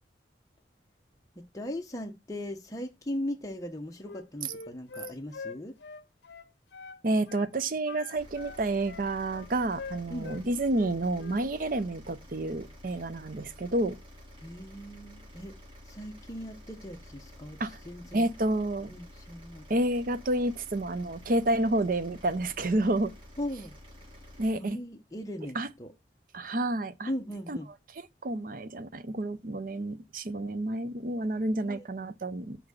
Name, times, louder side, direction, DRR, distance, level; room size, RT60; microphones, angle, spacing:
voice 1, 1.4-5.8 10.1-10.3 14.4-15.5 15.8-18.2 18.8-19.7 23.4-23.8 24.5-25.9 27.1-27.7 31.6-31.9, left 1 dB, 20° left, 0.8 m, -38 dB
Wind instrument woodwind instrument, 4.0-7.0 7.3-7.5 7.9-10.4 10.7-11.4, left 4 dB, 75° left, 0.7 m, -44 dB
voice 2, 7.0-14.0 17.6-17.8 18.1-18.9 19.7-23.1 24.4-24.8 25.6-25.7 26.3-27.1 27.5-27.6 28.2-32.6, right 1 dB, 50° right, 0.6 m, -29 dB
sound 1, 8.1-24.5, left 1 dB, 30° right, 2.4 m, -50 dB
6.0 x 4.6 x 6.6 m
head